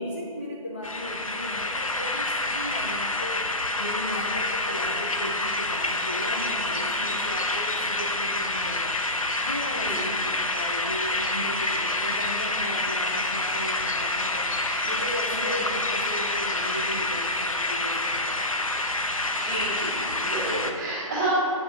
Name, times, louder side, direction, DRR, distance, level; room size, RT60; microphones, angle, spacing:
voice 1, 0.0-3.5 3.8-8.9 9.4-14.5 14.8-18.7, left 1 dB, 20° left, -2 dB, 0.4 m, -36 dB
sound 1, 0.8-20.7, left 2 dB, 65° left, 1.1 m, -27 dB
voice 2, 19.4-21.3, right 2 dB, 10° right, -7 dB, 2.0 m, -31 dB
8.1 x 7.0 x 7.0 m, 2.8 s
figure-of-eight pair, 160°, 18 cm